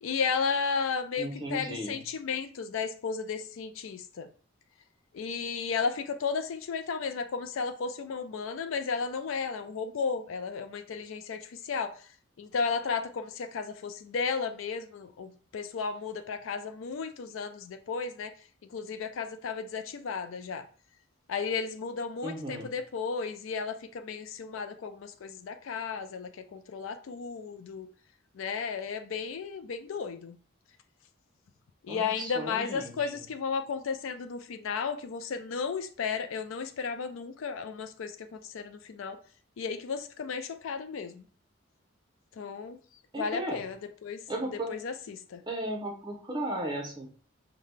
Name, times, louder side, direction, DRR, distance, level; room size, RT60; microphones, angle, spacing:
voice 1, 0.0-4.3 5.1-12.1 12.4-18.3 18.7-20.6 21.3-27.9 28.3-30.4 31.8-39.2 39.6-41.2 42.4-42.8 43.2-43.8 44.0-44.2 44.7-45.4, left 5 dB, 75° left, 0.4 m, -34 dB
voice 2, 1.2-2.0 22.2-22.7 31.9-33.1 43.1-43.6 44.3-44.7 45.4-47.1, right 1 dB, 20° right, 0.7 m, -35 dB
5.6 x 2.2 x 3.3 m
head